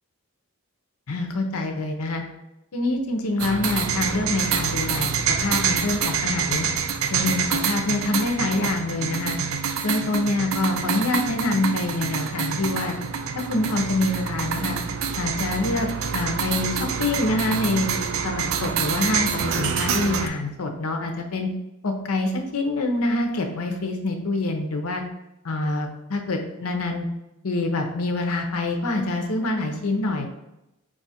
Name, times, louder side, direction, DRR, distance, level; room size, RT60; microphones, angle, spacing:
voice 1, 1.1-2.2 2.7-5.1 5.4-6.7 7.1-9.4 9.8-13.0 13.3-14.8 15.2-17.9 18.2-21.5 21.8-25.0 25.4-27.1 27.4-30.3, left 2 dB, 90° left, 4 dB, 0.7 m, -26 dB
sound 1, 3.4-20.3, right 6 dB, 70° right, 0.4 m, -26 dB
4.7 x 2.4 x 4.1 m, 0.89 s
head